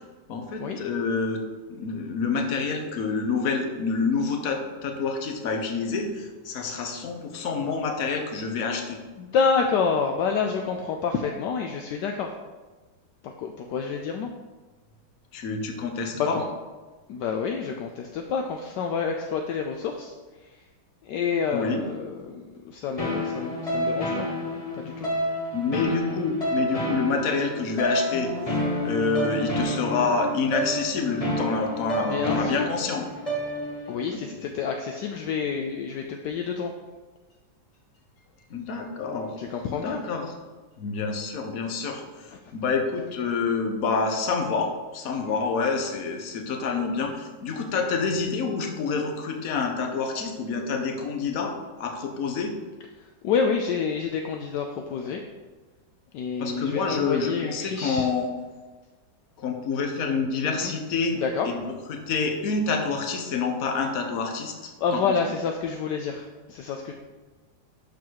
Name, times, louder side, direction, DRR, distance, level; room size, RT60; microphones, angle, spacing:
voice 1, 0.3-1.4 1.7-9.0 15.3-16.4 21.5-21.8 25.5-28.3 28.8-33.0 34.1-34.2 38.5-39.3 39.7-40.3 40.8-52.5 56.4-58.3 59.4-61.2 61.4-65.2, left 4 dB, 55° left, 4 dB, 1.3 m, -27 dB
voice 2, 9.2-12.3 13.2-14.3 16.1-16.4 17.1-20.6 21.0-24.3 24.8-25.1 32.0-32.7 33.9-36.7 39.4-40.0 53.0-55.2 56.1-58.1 60.4-60.7 61.1-61.5 64.8-66.9, left 5 dB, 75° left, 3 dB, 1.2 m, -28 dB
sound 1, 23.0-33.9, equal, 20° left, 1.4 m, -29 dB
12.0 x 4.0 x 4.6 m, 1.3 s
omnidirectional pair, 2.0 m